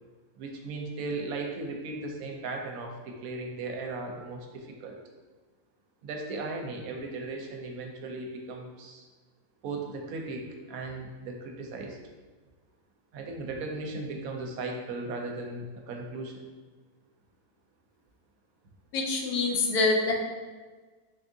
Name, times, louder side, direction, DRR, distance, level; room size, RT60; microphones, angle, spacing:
voice 1, 0.4-5.0 6.0-9.0 9.6-12.0 13.1-16.4, right 3 dB, 70° right, 2 dB, 1.0 m, -37 dB
voice 2, 18.9-20.1, left 3 dB, 90° left, 1 dB, 1.2 m, -25 dB
3.7 x 3.5 x 2.6 m, 1.4 s
omnidirectional pair, 1.6 m